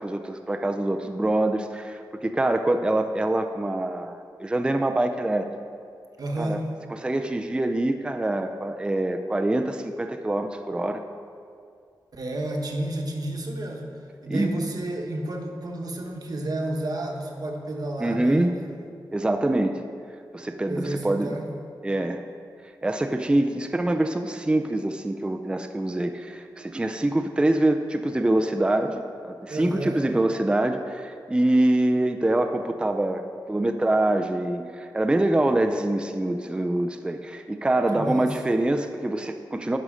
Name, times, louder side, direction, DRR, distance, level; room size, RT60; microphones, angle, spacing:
voice 1, 0.0-5.5 6.4-6.6 6.9-11.0 14.3-14.6 18.0-18.6 19.1-19.8 20.3-21.3 21.8-22.2 22.8-33.2 33.5-39.8, right 1 dB, 10° right, 6 dB, 0.4 m, -25 dB
voice 2, 6.2-6.7 12.1-13.9 14.2-18.7 20.7-21.5 29.5-30.0 37.9-38.4, right 1 dB, 55° right, 2 dB, 1.1 m, -31 dB
11.0 x 5.5 x 5.0 m, 2.3 s
wide cardioid pair, 120°, 8 cm